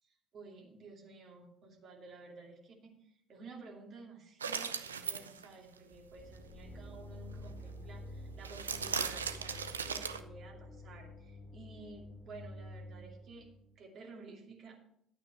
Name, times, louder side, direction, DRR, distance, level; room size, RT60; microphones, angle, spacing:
voice 1, 0.0-13.5 13.8-14.9, right 3 dB, 45° right, 0 dB, 2.5 m, -53 dB
sound 1, 4.4-5.5 8.4-10.2, right 6 dB, 80° right, 0.6 m, -37 dB
sound 2, 5.9-13.8, equal, 30° left, 2.1 m, -49 dB
12.0 x 8.5 x 4.3 m, 0.72 s
figure-of-eight pair, 55°, 0 cm